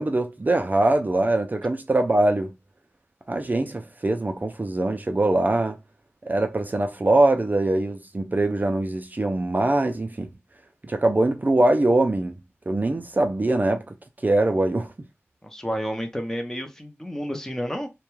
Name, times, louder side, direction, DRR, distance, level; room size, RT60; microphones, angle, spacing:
voice 1, 0.0-2.5 3.3-5.8 6.2-10.3 10.8-12.4 12.7-13.9 14.2-14.9, right 2 dB, 35° right, 0.4 m, -22 dB
voice 2, 15.4-17.9, equal, 10° left, 0.6 m, -30 dB
2.3 x 2.2 x 3.0 m
wide cardioid pair, 55°, 5 cm